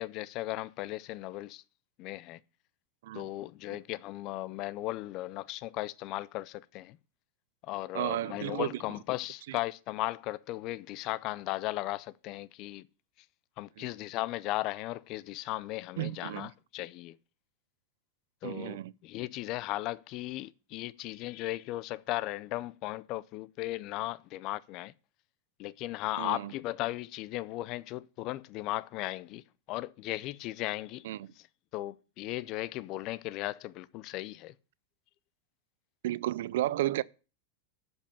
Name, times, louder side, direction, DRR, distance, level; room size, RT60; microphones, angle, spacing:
voice 1, 0.0-1.6 2.0-2.4 3.1-7.0 7.6-12.9 13.6-17.2 18.4-24.9 25.6-31.0 31.7-34.5, left 17 dB, 35° left, 0.4 m, -36 dB
voice 2, 7.9-8.8 9.5-9.6 13.8-13.9 16.0-16.5 18.4-18.9 26.2-26.5 31.0-31.3 36.0-37.0, right 14 dB, 70° right, 0.4 m, -33 dB
11.0 x 5.4 x 6.8 m
supercardioid pair, 160°, 0 cm